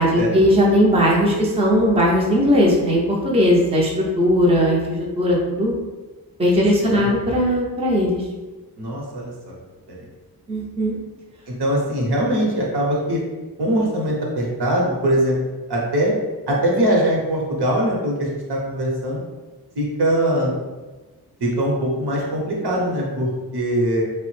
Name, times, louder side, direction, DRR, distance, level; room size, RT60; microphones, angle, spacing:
voice 1, 0.0-5.8 6.4-8.2 10.5-11.0, equal, 15° right, -3 dB, 0.5 m, -18 dB
voice 2, 8.8-9.3 11.5-13.2 13.6-15.4 15.7-16.1 16.5-19.2 19.8-20.6 21.4-24.0, right 1 dB, 75° right, -3 dB, 0.9 m, -21 dB
3.2 x 2.0 x 3.1 m, 1.2 s
wide cardioid pair, 95°, 40 cm